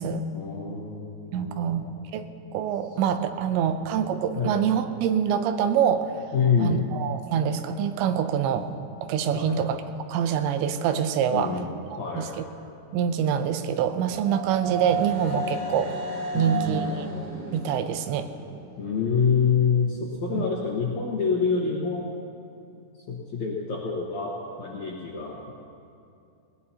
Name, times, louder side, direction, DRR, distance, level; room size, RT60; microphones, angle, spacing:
voice 1, 0.3-1.9 3.6-3.7 4.3-4.6 6.3-6.8 9.3-9.6 11.3-11.7 12.0-12.3 16.3-16.9 18.8-22.0 23.1-25.5, left 6 dB, 65° left, -4 dB, 1.9 m, -27 dB
voice 2, 1.3-1.8 2.1-2.3 2.5-6.3 6.6-8.7 9.0-9.8 10.1-11.6 11.9-12.3 12.9-16.0 16.3-16.9 17.5-18.3 20.3-20.5, right 8 dB, 85° right, 9 dB, 3.0 m, -25 dB
sound 1, 13.6-19.2, right 4 dB, 45° right, 4.4 m, -33 dB
19.5 x 18.5 x 2.9 m, 2.6 s
omnidirectional pair, 5.1 m